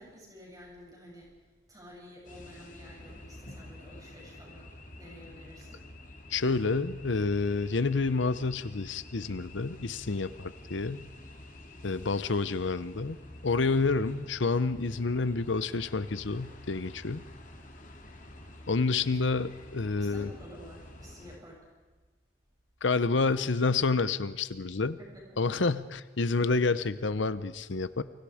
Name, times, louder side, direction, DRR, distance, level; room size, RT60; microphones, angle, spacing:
voice 1, 0.0-1.4 1.7-4.7 5.0-5.9 19.1-19.2 20.0-21.7 25.0-25.4, equal, 20° right, -3 dB, 7.9 m, -51 dB
sound 1, 2.2-21.4, left 1 dB, 40° left, 2.8 m, -49 dB
voice 2, 6.3-11.1 11.8-13.2 13.4-17.2 18.7-20.3 22.8-25.0 25.4-28.0, left 3 dB, 75° left, 14 dB, 0.8 m, -29 dB
28.5 x 24.0 x 5.0 m, 1.3 s
head